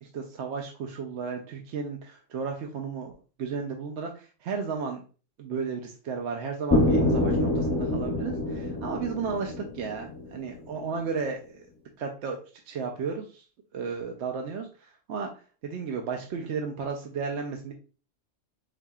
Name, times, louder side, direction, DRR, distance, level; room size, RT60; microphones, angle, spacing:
voice 1, 0.0-3.1 3.4-5.0 5.4-11.4 12.0-12.4 12.7-13.4 13.7-15.3 15.6-17.7, right 5 dB, 70° right, 2 dB, 0.8 m, -33 dB
sound 1, 6.7-10.6, left 1 dB, 15° left, 0.7 m, -26 dB
4.8 x 2.8 x 2.3 m, 0.36 s
omnidirectional pair, 1.3 m